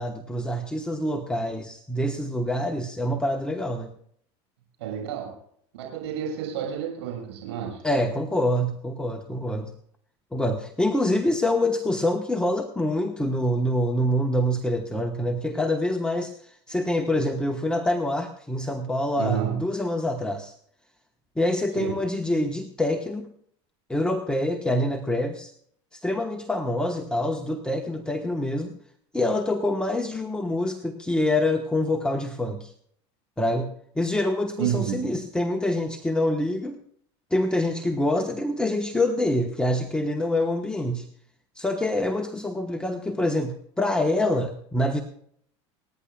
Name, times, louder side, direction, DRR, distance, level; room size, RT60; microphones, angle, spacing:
voice 1, 0.0-3.9 7.8-9.7 10.3-20.5 21.4-23.3 23.9-25.5 25.9-28.7 29.1-32.7 33.4-33.7 34.0-36.8 37.3-41.1 41.5-45.0, left 1 dB, 5° left, 3 dB, 1.2 m, -26 dB
voice 2, 4.8-5.3 5.7-7.8 19.2-19.5 21.8-21.9 34.6-35.2, right 9 dB, 90° right, 0 dB, 6.5 m, -30 dB
29.0 x 10.0 x 2.4 m, 0.64 s
supercardioid pair, 105°, 14 cm